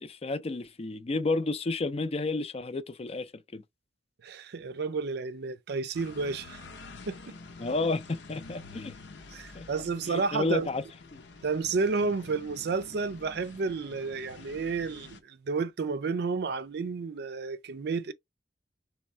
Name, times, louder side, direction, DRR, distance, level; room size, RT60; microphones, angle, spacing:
voice 1, 0.0-3.6 7.6-8.9 9.5-9.6 10.1-10.8 11.1-11.2, left 3 dB, 35° left, 0.4 m, -31 dB
voice 2, 4.2-6.6 7.1-7.3 9.3-10.7 11.4-18.1, right 4 dB, 65° right, 0.4 m, -31 dB
sound 1, 5.9-15.2, left 3 dB, 80° left, 0.7 m, -48 dB
3.5 x 3.1 x 4.2 m
head